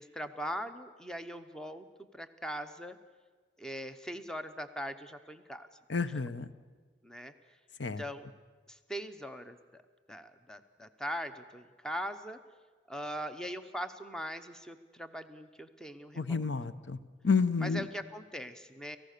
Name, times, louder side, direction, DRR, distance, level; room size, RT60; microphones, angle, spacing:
voice 1, 0.0-1.9 2.1-3.0 3.6-5.7 7.0-7.3 7.8-8.3 8.7-9.8 10.1-12.4 12.9-16.4 17.6-19.0, equal, 5° left, 9 dB, 0.8 m, -41 dB
voice 2, 5.9-6.5 7.8-8.0 16.2-17.0 17.2-17.9, left 5 dB, 80° left, 12 dB, 0.8 m, -30 dB
30.0 x 15.0 x 6.7 m, 1.5 s
head